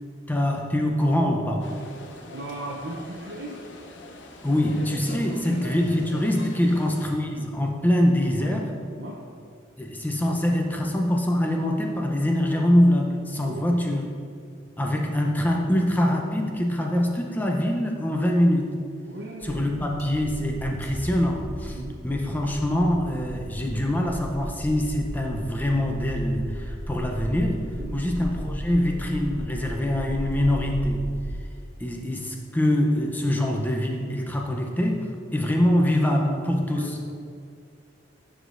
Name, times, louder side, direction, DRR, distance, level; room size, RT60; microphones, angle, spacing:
voice 1, 0.3-1.7 4.4-8.7 9.8-14.0 14.8-18.7 19.4-21.8 22.0-27.6 27.9-31.1 31.8-37.0, left 1 dB, 10° left, 1 dB, 0.6 m, -24 dB
sound 1, 1.6-7.1, left 2 dB, 70° left, 0.7 m, -43 dB
voice 2, 2.3-3.6 5.2-5.6 6.6-6.7 8.3-8.5 9.0-9.2 13.4-14.1 19.1-19.9 21.7-22.0 27.7-28.0 36.7-36.9, right 2 dB, 60° right, -4 dB, 0.7 m, -37 dB
sound 2, 19.4-31.3, equal, 15° right, 1.0 m, -35 dB
11.0 x 5.0 x 2.5 m, 2.3 s
head